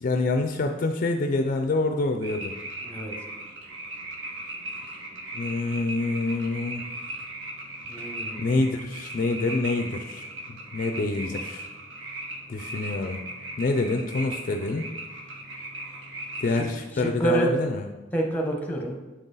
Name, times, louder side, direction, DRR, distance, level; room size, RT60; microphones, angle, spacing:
voice 1, 0.0-2.5 5.3-6.9 8.4-11.6 12.5-13.2 13.6-14.8 16.4-17.9, left 3 dB, 45° left, 5 dB, 0.4 m, -26 dB
sound 1, 2.2-16.7, right 1 dB, 75° right, 1.0 m, -38 dB
voice 2, 2.8-3.1 7.9-8.4 17.0-17.5 18.1-19.0, right 2 dB, 10° left, 1 dB, 0.8 m, -27 dB
7.7 x 3.8 x 3.9 m, 1.2 s
head